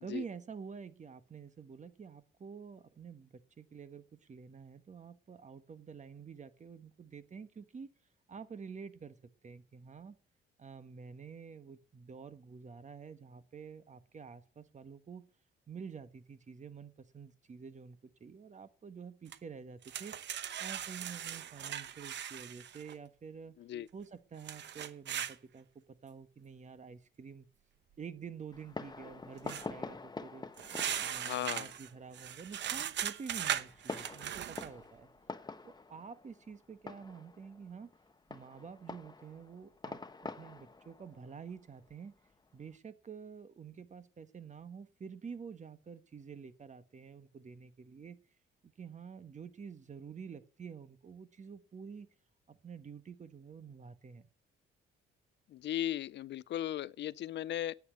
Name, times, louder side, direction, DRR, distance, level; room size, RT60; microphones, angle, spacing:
voice 1, 0.0-7.9 8.3-9.2 9.4-10.2 10.6-15.2 15.7-20.2 20.6-23.6 23.9-27.4 28.0-30.5 31.0-35.1 35.6-37.9 38.3-42.1 42.5-48.2 48.6-52.1 52.5-54.3, right 6 dB, 35° right, 1.3 m, -48 dB
sound 1, 19.3-19.4 19.8-22.9 24.4-25.4 29.5-29.7 30.6-34.7, right 10 dB, 65° right, 0.9 m, -39 dB
Fireworks, 28.5-42.7, left 3 dB, 20° left, 0.9 m, -47 dB
voice 2, 31.2-31.7 55.5-57.7, left 12 dB, 65° left, 0.5 m, -37 dB
9.6 x 8.5 x 8.0 m
cardioid pair, 90°, 20 cm